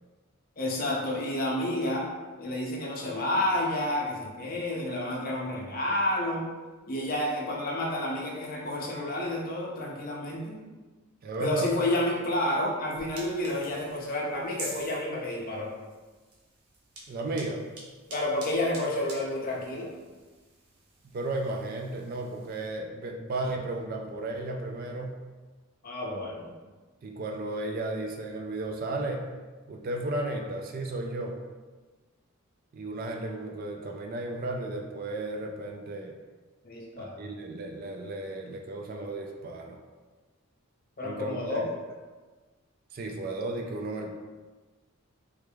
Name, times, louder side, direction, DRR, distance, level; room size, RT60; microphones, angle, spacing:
voice 1, 0.6-2.0 2.4-6.5 6.9-10.6 11.4-15.7 18.1-19.9 25.8-26.5 36.6-37.3 41.0-41.7, left 1 dB, 40° left, -2 dB, 0.6 m, -30 dB
voice 2, 11.2-11.7 17.1-17.6 21.0-25.2 27.0-29.3 29.7-31.4 32.7-36.1 37.0-39.8 41.0-41.6 42.9-44.2, right 2 dB, 40° right, 2 dB, 0.3 m, -34 dB
sound 1, 13.0-22.7, right 2 dB, 90° right, 0.8 m, -47 dB
3.3 x 3.3 x 2.3 m, 1.3 s
head